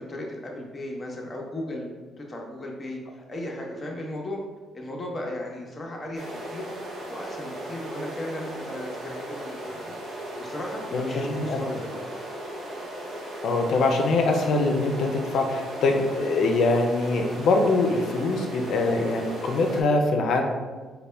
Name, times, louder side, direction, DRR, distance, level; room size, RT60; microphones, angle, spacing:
voice 1, 0.0-1.9 2.2-4.4 4.7-6.7 7.1-12.0, left 1 dB, 30° left, -1 dB, 0.8 m, -36 dB
sound 1, 6.2-19.8, right 1 dB, 75° right, 0.8 m, -37 dB
voice 2, 10.9-11.6 13.4-20.6, left 3 dB, 70° left, 3 dB, 0.5 m, -23 dB
4.1 x 2.2 x 3.3 m, 1.3 s
cardioid pair, 90°, 0 cm